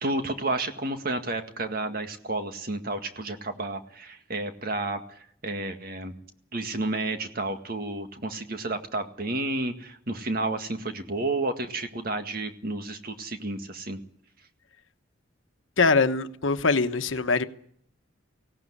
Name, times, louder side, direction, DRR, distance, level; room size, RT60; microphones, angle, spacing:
voice 1, 0.0-5.0 5.4-6.1 6.5-14.0, right 2 dB, 50° right, 7 dB, 2.0 m, -31 dB
voice 2, 15.8-17.5, left 4 dB, 85° left, 10 dB, 1.2 m, -23 dB
18.5 x 17.0 x 9.9 m, 0.62 s
head